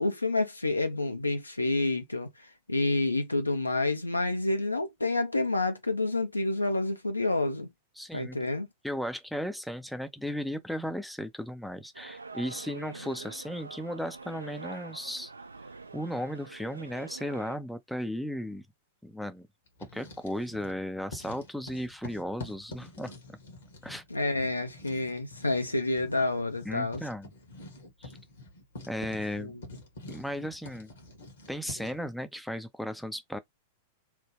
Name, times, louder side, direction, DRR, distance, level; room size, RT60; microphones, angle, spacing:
voice 1, 0.0-7.7 8.1-8.7 24.1-27.0 29.4-29.6, left 2 dB, 85° left, 0.7 m, -29 dB
voice 2, 8.0-8.4 8.8-15.3 15.9-18.7 19.0-19.5 19.9-23.1 23.8-24.0 26.7-27.3 28.0-28.1 28.9-29.6 30.1-30.9 31.5-33.4, equal, ahead, 0.4 m, -35 dB
sound 1, 11.9-17.6, right 4 dB, 80° right, 0.5 m, -45 dB
Writing, 19.7-20.8 21.1-32.1, left 2 dB, 65° left, 1.2 m, -47 dB
3.0 x 2.1 x 3.4 m
figure-of-eight pair, 95°, 0 cm